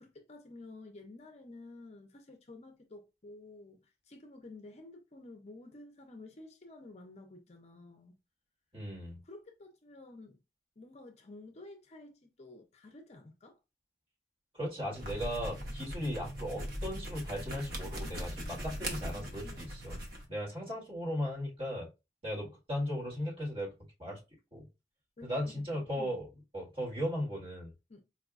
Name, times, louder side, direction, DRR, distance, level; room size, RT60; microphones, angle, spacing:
voice 1, 0.0-8.2 9.2-10.4 10.8-13.6 18.9-19.6 25.2-26.1 27.9-28.0, left 2 dB, 40° left, 0.5 m, -52 dB
voice 2, 8.7-9.2 14.5-20.0 20.3-21.9 22.2-23.7 24.0-24.2 24.5-24.6 25.2-26.3 26.5-27.7, equal, 30° right, 1.7 m, -37 dB
sound 1, 14.9-20.3, equal, 60° right, 0.9 m, -40 dB
4.5 x 2.3 x 2.4 m
head